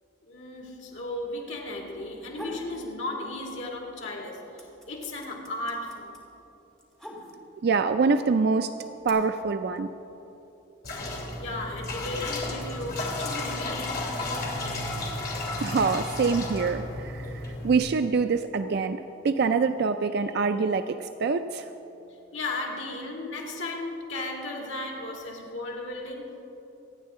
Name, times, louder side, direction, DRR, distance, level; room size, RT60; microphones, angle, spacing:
voice 1, 0.2-6.2 9.7-9.8 11.0-11.1 11.4-15.0 22.3-26.4, left 2 dB, 80° left, 0 dB, 2.5 m, -36 dB
sound 1, 2.3-2.7 3.1-3.8 4.1-7.7 8.5-9.1, left 1 dB, 5° left, 2.3 m, -43 dB
voice 2, 7.6-8.7 9.0-9.9 15.6-21.7, right 4 dB, 60° right, 9 dB, 0.4 m, -25 dB
sound 2, 10.8-17.8, left 2 dB, 55° left, 2.8 m, -33 dB
25.5 x 9.6 x 3.7 m, 2.9 s
head